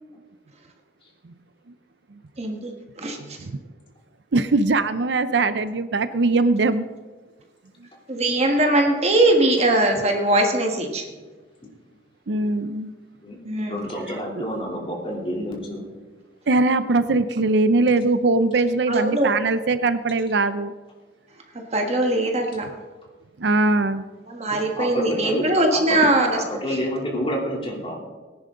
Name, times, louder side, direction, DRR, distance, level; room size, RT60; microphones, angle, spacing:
voice 1, 2.4-2.7 3.0-3.2 8.1-11.0 13.4-13.8 18.9-19.3 21.7-22.7 24.3-26.4, right 1 dB, 35° right, 3 dB, 1.5 m, -21 dB
voice 2, 3.3-3.6 4.3-6.9 12.3-12.9 16.5-20.7 23.4-24.0, right 3 dB, 70° right, 12 dB, 0.6 m, -21 dB
voice 3, 13.7-15.9 24.5-26.1 26.3-28.0, equal, 30° left, -2 dB, 3.1 m, -29 dB
19.0 x 10.5 x 3.8 m, 1.3 s
head